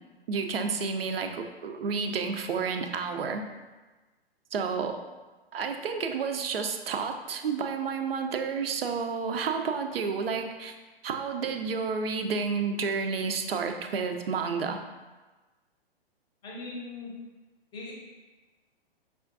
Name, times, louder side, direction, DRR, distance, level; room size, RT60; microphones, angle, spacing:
voice 1, 0.3-3.4 4.5-5.0 5.5-10.7 11.0-14.8, right 5 dB, 70° right, 6 dB, 0.5 m, -30 dB
voice 2, 16.4-17.1 17.7-17.9, left 3 dB, 15° left, -4 dB, 0.6 m, -39 dB
5.5 x 2.3 x 2.5 m, 1.2 s
figure-of-eight pair, 115°, 31 cm